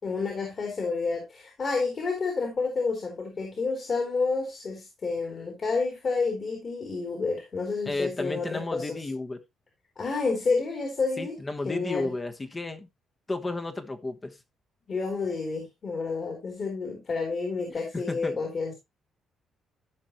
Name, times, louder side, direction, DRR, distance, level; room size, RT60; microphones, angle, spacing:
voice 1, 0.0-9.0 10.0-11.3 11.6-12.1 14.9-18.7, left 4 dB, 45° left, 3.3 m, -29 dB
voice 2, 7.8-9.4 11.2-12.9 13.3-14.4 17.7-18.4, left 2 dB, 25° left, 1.2 m, -33 dB
14.5 x 5.3 x 3.0 m
cardioid pair, 90°, 0 cm